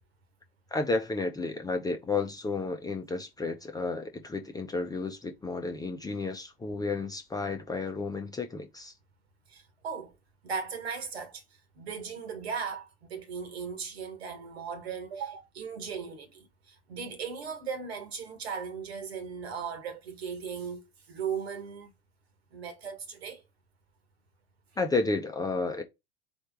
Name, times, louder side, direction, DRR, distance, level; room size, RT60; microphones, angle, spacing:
voice 1, 0.7-8.9 24.8-25.8, left 3 dB, 10° left, 0.7 m, -32 dB
voice 2, 9.5-10.1 10.4-11.4 11.7-21.9 22.5-23.4, right 6 dB, 75° right, 1.6 m, -37 dB
4.3 x 3.2 x 3.6 m
hypercardioid pair, 85°, 31 cm